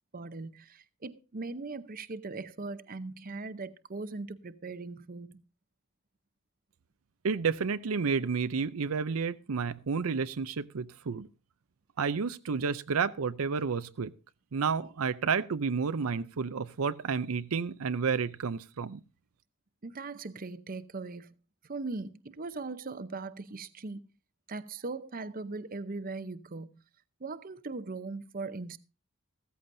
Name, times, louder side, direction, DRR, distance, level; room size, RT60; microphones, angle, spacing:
voice 1, 0.1-5.3 19.8-21.3 21.7-24.0 24.5-26.7 27.2-28.8, right 3 dB, 40° right, 0.7 m, -39 dB
voice 2, 7.2-11.3 12.0-14.1 14.5-19.0, right 5 dB, 75° right, 0.6 m, -31 dB
15.5 x 14.0 x 2.6 m
head